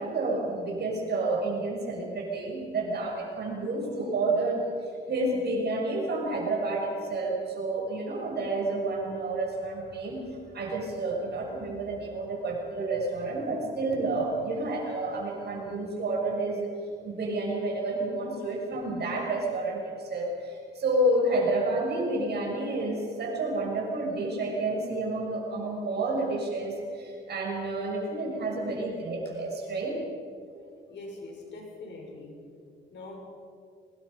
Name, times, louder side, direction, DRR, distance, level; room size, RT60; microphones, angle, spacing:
voice 1, 0.0-4.6 5.1-10.2 10.5-16.7 17.0-30.0, right 2 dB, 55° right, -1 dB, 6.4 m, -30 dB
voice 2, 30.9-32.3 32.9-33.1, left 2 dB, 65° left, 0 dB, 6.3 m, -42 dB
23.0 x 20.0 x 5.6 m, 2.5 s
cardioid pair, 90°, 20 cm